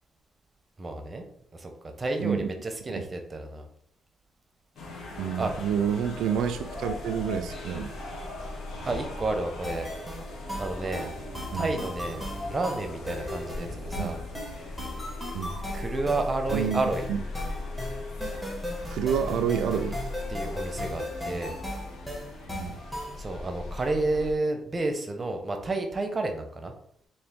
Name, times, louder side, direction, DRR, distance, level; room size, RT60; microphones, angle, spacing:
voice 1, 0.8-1.2 1.5-1.7 2.0-3.7 5.4-5.5 8.9-9.9 10.6-11.1 11.5-14.2 15.7-17.1 20.3-21.5 23.2-26.7, right 2 dB, 30° right, 5 dB, 0.7 m, -30 dB
sound 1, 4.8-24.3, left 2 dB, 75° left, 0.9 m, -38 dB
voice 2, 5.2-7.9 11.5-11.8 14.0-14.2 15.3-15.6 16.5-16.8 17.1-17.2 18.9-20.0 22.5-22.8, right 8 dB, 80° right, 9 dB, 0.3 m, -29 dB
sound 2, 9.6-23.2, equal, 10° left, 1.3 m, -37 dB
3.7 x 2.6 x 3.5 m, 0.68 s
cardioid pair, 90°, 0 cm